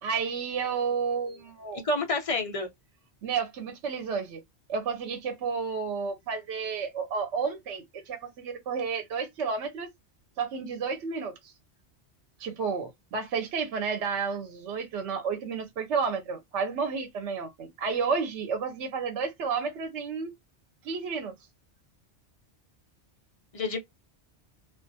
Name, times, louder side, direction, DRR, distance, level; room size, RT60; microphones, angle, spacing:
voice 1, 0.0-1.8 3.2-4.4 4.7-9.9 10.4-11.5 12.4-20.3 20.8-21.3, right 5 dB, 80° right, 0.9 m, -31 dB
voice 2, 1.8-2.7 23.5-23.8, left 2 dB, 40° left, 0.5 m, -28 dB
2.4 x 2.3 x 2.5 m
omnidirectional pair, 1.2 m